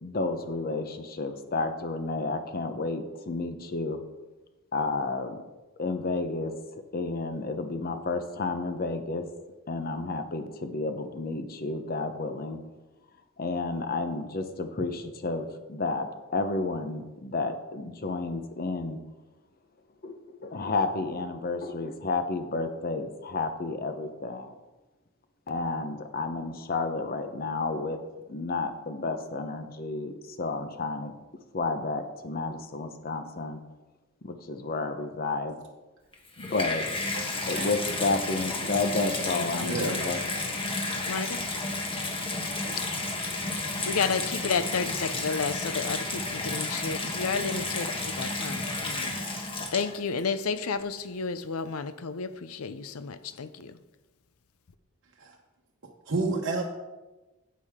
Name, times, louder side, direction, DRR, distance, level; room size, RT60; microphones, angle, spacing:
voice 1, 0.0-4.0 4.7-5.4 5.8-6.5 6.9-9.3 9.7-12.6 13.4-19.0 20.0-24.5 25.5-28.0 28.3-31.1 31.5-33.6 34.2-35.6 36.4-36.8 37.4-40.2, left 3 dB, 45° left, 0.8 m, -31 dB
Water tap faucet / Bathtub (filling or washing), 36.1-50.2 51.0-51.1, left 2 dB, 25° left, 1.3 m, -32 dB
voice 2, 37.5-37.9 39.6-40.0 42.6-42.8 55.2-55.3 56.1-56.6, right 3 dB, 60° right, 1.0 m, -30 dB
voice 3, 39.2-40.0 41.1-41.4 42.8-42.9 43.6-53.8, left 5 dB, 85° left, 0.6 m, -32 dB
10.0 x 8.4 x 3.6 m
head